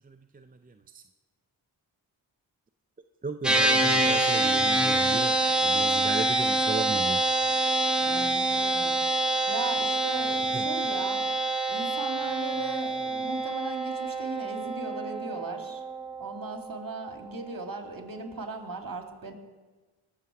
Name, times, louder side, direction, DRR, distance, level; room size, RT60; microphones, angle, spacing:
voice 1, 0.1-1.0 3.2-5.4 5.6-7.2 10.5-10.6, right 4 dB, 20° right, 8 dB, 0.5 m, -36 dB
sound 1, 3.4-17.0, right 2 dB, ahead, 1.6 m, -26 dB
voice 2, 7.9-9.0 9.5-11.3 11.7-15.8 16.2-19.3, right 3 dB, 40° right, 4 dB, 2.2 m, -38 dB
19.0 x 7.0 x 4.8 m, 1.3 s
supercardioid pair, 40°, 50 cm